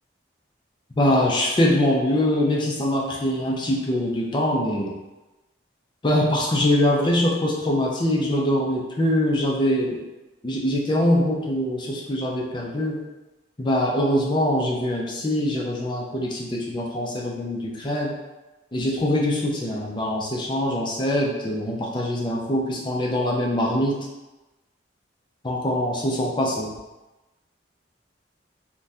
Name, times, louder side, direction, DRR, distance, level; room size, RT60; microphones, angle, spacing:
voice 1, 1.0-4.9 6.0-10.0 10.4-13.0 13.6-18.1 18.7-23.9 25.4-26.7, left 1 dB, 25° left, -3 dB, 0.4 m, -23 dB
3.4 x 2.2 x 2.6 m, 1.1 s
head